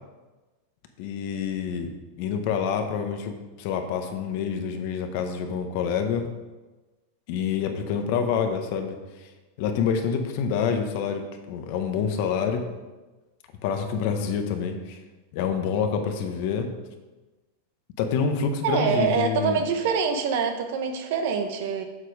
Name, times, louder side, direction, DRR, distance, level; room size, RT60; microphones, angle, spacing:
voice 1, 1.0-1.9 2.2-6.3 7.3-9.0 9.6-12.6 13.6-15.0 15.3-16.7 18.0-19.6, left 6 dB, 60° left, 5 dB, 1.2 m, -27 dB
voice 2, 18.6-21.8, right 6 dB, 65° right, 6 dB, 1.1 m, -25 dB
7.5 x 6.2 x 4.9 m, 1.2 s
hypercardioid pair, 125°, 0 cm